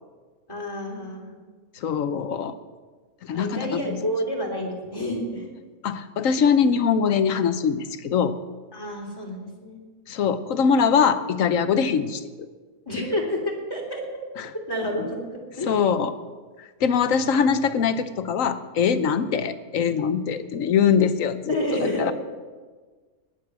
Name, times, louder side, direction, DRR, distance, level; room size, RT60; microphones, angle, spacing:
voice 1, 0.5-1.3 3.3-5.5 8.7-9.8 12.9-14.0 14.7-15.7 21.5-22.1, equal, 15° left, -2 dB, 3.3 m, -29 dB
voice 2, 1.8-2.6 3.2-3.8 5.8-8.3 10.1-12.2 15.7-16.1 16.6-21.5 22.0-22.1, left 6 dB, 65° left, 11 dB, 1.2 m, -22 dB
19.5 x 7.1 x 7.7 m, 1.4 s
omnidirectional pair, 1.5 m